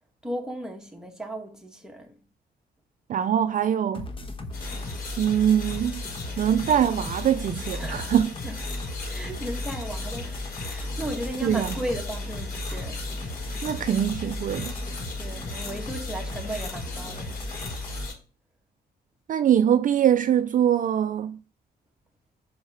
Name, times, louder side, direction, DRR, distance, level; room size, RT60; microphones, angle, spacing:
voice 1, 0.2-2.2 7.8-8.2 8.4-8.6 9.0-13.1 15.2-17.3, right 1 dB, 5° right, 1.7 m, -36 dB
voice 2, 3.1-4.1 5.2-6.0 6.4-8.3 11.4-11.7 13.6-14.7 19.3-21.4, right 9 dB, 50° right, 0.4 m, -23 dB
sound 1, 3.9-18.1, left 2 dB, 30° left, 1.1 m, -35 dB
sound 2, 4.5-18.1, left 3 dB, 55° left, 4.3 m, -40 dB
5.6 x 4.7 x 5.6 m
cardioid pair, 90°, 18 cm